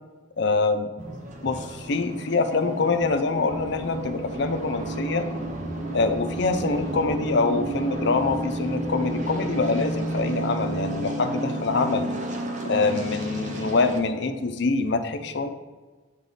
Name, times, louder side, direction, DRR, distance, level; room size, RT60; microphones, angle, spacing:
voice 1, 0.4-0.9 1.4-5.3 5.9-12.1 12.6-15.5, left 3 dB, 60° left, 8 dB, 0.5 m, -25 dB
sound 1, 1.0-14.0, right 1 dB, 40° right, 0.7 m, -31 dB
8.1 x 3.7 x 3.9 m, 1.3 s
head